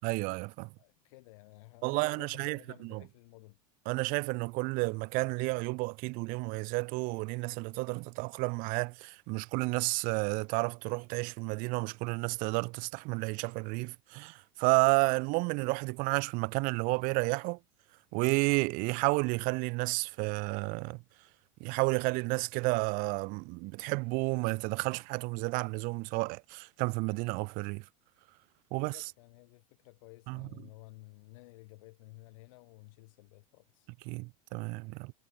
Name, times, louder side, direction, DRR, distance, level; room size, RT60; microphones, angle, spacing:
voice 1, 0.0-0.7 1.8-3.0 3.9-17.6 18.1-21.0 21.6-27.8 28.7-29.1 30.3-30.5 34.1-35.1, right 28 dB, 55° right, 0.4 m, -31 dB
voice 2, 0.8-3.6 28.8-33.9, left 23 dB, 70° left, 3.7 m, -54 dB
hypercardioid pair, 85°, 18 cm